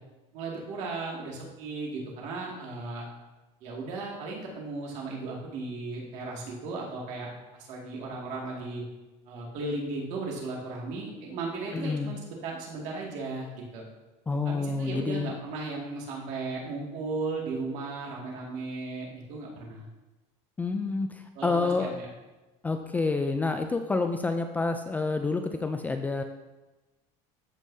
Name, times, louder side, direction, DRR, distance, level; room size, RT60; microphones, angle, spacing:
voice 1, 0.3-3.1 3.6-8.8 9.3-13.8 14.4-19.9 21.3-22.1, right 3 dB, 55° right, -2 dB, 2.1 m, -36 dB
voice 2, 11.7-12.1 14.3-15.3 20.6-21.9 22.6-26.2, left 3 dB, 10° left, 6 dB, 0.3 m, -28 dB
13.5 x 5.4 x 2.7 m, 1.1 s
cardioid pair, 150°, 14 cm